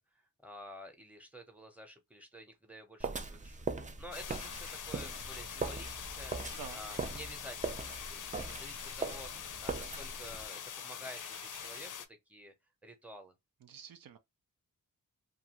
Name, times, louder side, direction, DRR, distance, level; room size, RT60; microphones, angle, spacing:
voice 1, 0.0-6.4 6.7-12.5 12.8-13.3, equal, 5° right, 0.8 m, -51 dB
sound 1, 3.0-10.4, right 4 dB, 20° right, 0.4 m, -41 dB
sound 2, 4.1-12.1, left 8 dB, 65° left, 0.5 m, -44 dB
sound 3, 4.4-7.3 7.6-9.4 9.7-12.0, right 5 dB, 45° right, 0.7 m, -58 dB
voice 2, 13.6-14.2, right 7 dB, 75° right, 0.6 m, -48 dB
2.6 x 2.4 x 2.9 m
wide cardioid pair, 105°, 35 cm